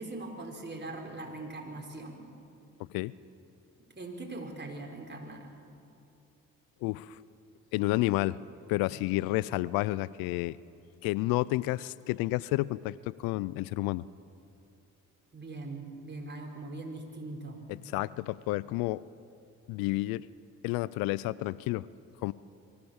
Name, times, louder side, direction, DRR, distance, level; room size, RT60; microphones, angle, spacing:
voice 1, 0.0-2.3 4.0-5.5 15.3-17.6, right 2 dB, 30° right, 1 dB, 4.8 m, -41 dB
voice 2, 2.8-3.1 6.8-7.2 7.7-8.4 8.7-10.6 11.0-14.0 17.7-19.0 19.7-20.3 20.6-21.9 22.2-22.3, left 19 dB, 85° left, 20 dB, 0.5 m, -30 dB
24.0 x 15.5 x 7.2 m, 2.6 s
hypercardioid pair, 50°, 35 cm